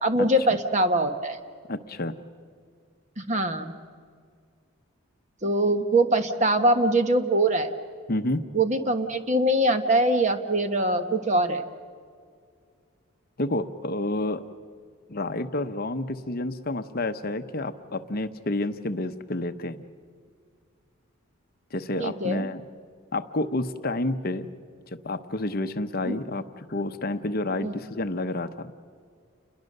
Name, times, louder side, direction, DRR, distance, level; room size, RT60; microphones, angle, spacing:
voice 1, 0.0-1.4 3.2-3.7 5.4-7.7 8.5-11.6 22.0-22.5 27.6-27.8, right 1 dB, 35° right, 8 dB, 1.3 m, -23 dB
voice 2, 1.7-2.1 8.1-8.5 13.4-14.5 15.1-19.8 21.7-22.7 23.1-24.5 25.0-28.7, left 2 dB, 45° left, 9 dB, 0.9 m, -29 dB
29.5 x 21.5 x 6.7 m, 2.1 s
head